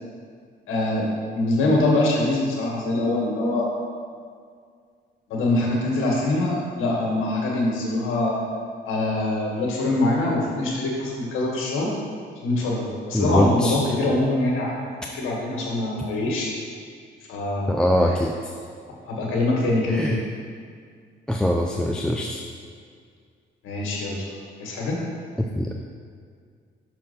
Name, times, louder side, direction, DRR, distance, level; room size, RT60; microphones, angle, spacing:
voice 1, 0.7-3.7 5.3-8.4 8.8-12.0 12.3-14.9 15.1-16.5 17.3-17.8 18.1-18.2 18.9-20.2 23.6-25.0, left 2 dB, 85° left, -2 dB, 1.7 m, -24 dB
voice 2, 13.1-13.7 17.7-18.3 20.0-20.2 21.3-22.4 25.6-25.9, left 1 dB, 5° left, 1 dB, 0.4 m, -22 dB
6.3 x 4.4 x 5.6 m, 2.1 s
cardioid pair, 90°, 20 cm